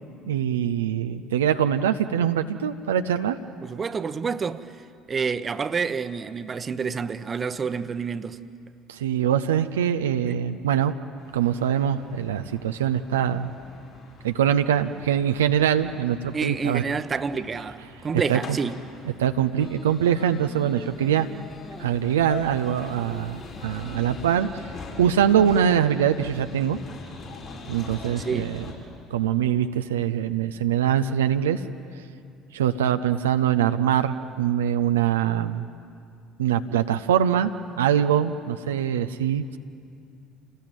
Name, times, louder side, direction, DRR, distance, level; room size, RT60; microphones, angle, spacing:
voice 1, 0.3-3.4 8.9-10.9 11.3-13.5 14.2-16.8 18.3-18.6 19.2-21.3 21.8-24.5 25.0-26.8 27.7-28.6 29.1-31.6 32.5-35.7 36.4-37.5 37.8-39.6, right 9 dB, 85° right, 0.6 m, -23 dB
voice 2, 3.6-4.7 5.1-8.4 16.3-18.7 28.2-28.6, right 5 dB, 35° right, 1.0 m, -28 dB
sound 1, 11.2-28.7, left 3 dB, 55° left, 7.4 m, -43 dB
sound 2, 19.6-25.8, left 2 dB, 35° left, 2.0 m, -45 dB
27.5 x 19.5 x 9.2 m
hypercardioid pair, 65°, 0 cm